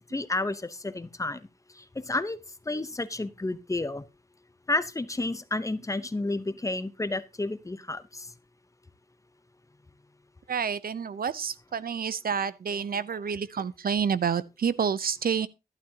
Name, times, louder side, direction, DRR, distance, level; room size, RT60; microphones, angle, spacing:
voice 1, 0.1-1.4 2.1-2.4 2.7-4.0 4.7-8.3, left 2 dB, 20° left, 0.8 m, -31 dB
voice 2, 10.5-15.5, right 7 dB, 65° right, 0.7 m, -29 dB
12.0 x 11.5 x 2.8 m
wide cardioid pair, 100°, 16 cm